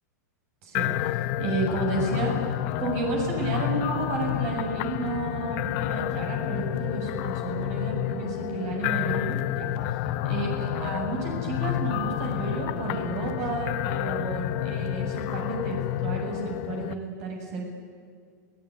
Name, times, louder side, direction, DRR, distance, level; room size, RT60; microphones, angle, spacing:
voice 1, 0.6-10.0 10.2-17.7, right 3 dB, 55° right, 1 dB, 7.4 m, -32 dB
sound 1, 0.7-16.9, left 12 dB, 50° left, 1.2 m, -29 dB
29.5 x 19.0 x 9.7 m, 2.1 s
supercardioid pair, 135°, 10 cm